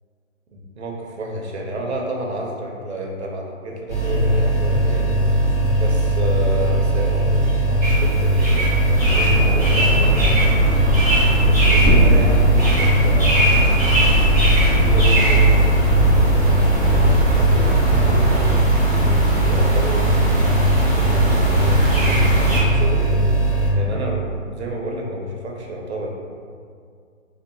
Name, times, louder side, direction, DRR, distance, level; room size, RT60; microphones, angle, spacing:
voice 1, 0.5-5.5 5.8-10.3 11.4-18.5 19.0-26.1, right 1 dB, 55° right, 0 dB, 0.5 m, -30 dB
sound 1, 3.9-23.7, right 2 dB, 60° left, 0.9 m, -19 dB
sound 2, 7.8-22.6, equal, 5° right, 0.6 m, -22 dB
sound 3, 8.8-18.3, equal, 25° left, 0.9 m, -21 dB
2.7 x 2.1 x 2.6 m, 2.2 s
hypercardioid pair, 170°, 39 cm